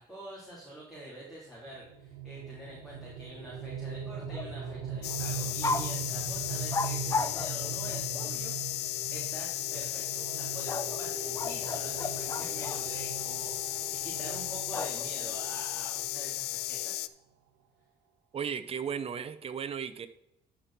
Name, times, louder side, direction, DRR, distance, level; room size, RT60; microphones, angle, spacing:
voice 1, 0.0-8.6 9.1-17.1, right 1 dB, ahead, -7 dB, 4.0 m, -46 dB
sound 1, 1.7-16.4, right 6 dB, 90° right, 1.1 m, -41 dB
sound 2, 4.2-4.8 5.1-5.2 5.6-5.9 6.7-8.4 10.7-12.8 14.7-15.3, left 3 dB, 20° left, 0.6 m, -35 dB
sound 3, 5.0-17.1, left 16 dB, 80° left, 0.5 m, -35 dB
voice 2, 18.3-20.1, right 7 dB, 35° right, 10 dB, 0.8 m, -35 dB
13.0 x 5.3 x 4.5 m, 0.81 s
cardioid pair, 110°, 17 cm